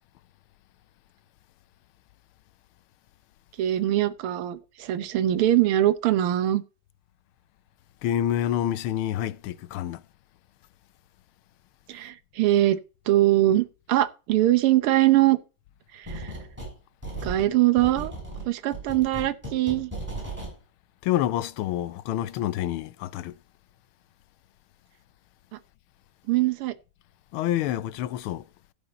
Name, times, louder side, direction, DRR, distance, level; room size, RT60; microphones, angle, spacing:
voice 1, 3.6-6.6 11.9-12.8 13.1-15.4 15.9-16.3 17.2-18.1 18.4-19.9 25.5-25.6 26.3-26.8, right 14 dB, 90° right, 1.8 m, -22 dB
voice 2, 8.0-10.0 21.0-23.3 27.3-28.4, left 12 dB, 80° left, 1.5 m, -27 dB
sound 1, 16.0-16.7 17.0-20.5, right 2 dB, 5° right, 7.2 m, -36 dB
16.0 x 5.5 x 4.1 m
omnidirectional pair, 2.3 m